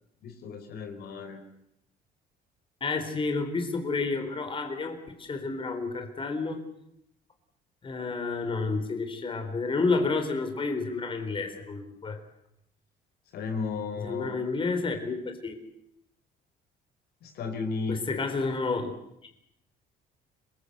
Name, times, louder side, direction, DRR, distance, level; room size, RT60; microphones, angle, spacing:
voice 1, 0.2-1.4 13.3-14.3 17.2-18.2, left 4 dB, 70° left, 7 dB, 4.4 m, -34 dB
voice 2, 2.8-6.6 7.8-12.2 14.0-15.2 15.4-15.6 17.9-18.9, left 3 dB, 30° left, 6 dB, 4.0 m, -30 dB
26.5 x 21.0 x 8.1 m, 0.79 s
cardioid pair, 110°, 17 cm